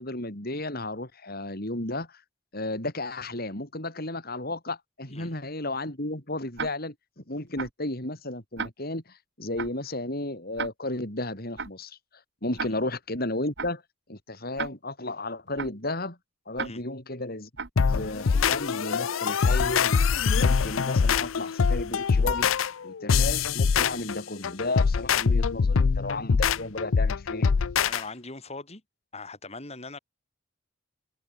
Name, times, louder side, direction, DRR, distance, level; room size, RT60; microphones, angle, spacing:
voice 1, 0.0-2.2 2.5-12.0 12.4-13.8 14.1-16.2 16.5-17.5 17.8-19.9 20.3-27.5, left 2 dB, 50° left, 5.5 m, -33 dB
Tick-tock, 6.6-6.7 7.6-7.7 8.6-8.7 9.6-9.7 10.6-10.7 11.6-11.7 12.6-12.7 13.6-13.7 14.6-14.7 15.6-15.7 16.6-16.7 17.6-17.7, right 5 dB, 60° right, 2.0 m, -32 dB
sound 1, 17.8-28.0, left 5 dB, 85° left, 0.5 m, -24 dB
voice 2, 27.9-28.8 29.1-30.0, left 3 dB, 35° left, 4.7 m, -41 dB
head